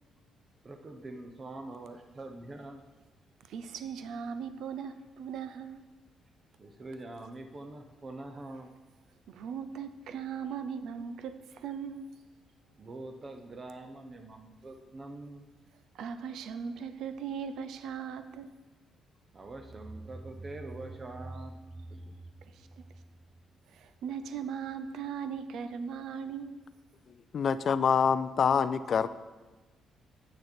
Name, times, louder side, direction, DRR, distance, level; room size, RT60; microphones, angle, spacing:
voice 1, 0.6-2.8 6.6-8.7 12.8-15.5 19.3-21.5 22.1-22.2, right 2 dB, 35° right, 5 dB, 0.8 m, -44 dB
voice 2, 3.5-5.8 9.3-12.1 15.9-18.5 22.6-22.8 23.7-26.6, right 7 dB, 75° right, 10 dB, 0.5 m, -38 dB
sound 1, 19.4-24.0, right 2 dB, 20° right, 0.4 m, -47 dB
voice 3, 27.3-29.1, left 6 dB, 55° left, 14 dB, 0.3 m, -26 dB
8.0 x 6.4 x 4.4 m, 1.2 s
cardioid pair, 90°, 0 cm